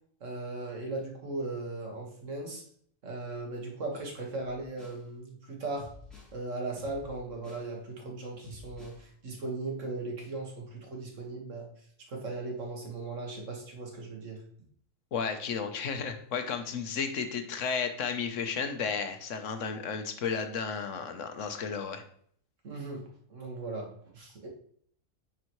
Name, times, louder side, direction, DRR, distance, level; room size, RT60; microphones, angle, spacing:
voice 1, 0.2-2.6 3.0-5.9 6.3-11.7 12.1-14.4 22.6-24.5, right 2 dB, 75° right, 0 dB, 1.9 m, -38 dB
sound 1, 4.4-5.0 5.8-6.4 6.8-7.7 8.4-9.0, left 3 dB, ahead, 2.5 m, -50 dB
voice 2, 15.1-22.0, left 6 dB, 75° left, 7 dB, 1.2 m, -33 dB
9.5 x 4.7 x 3.1 m, 0.62 s
omnidirectional pair, 1.3 m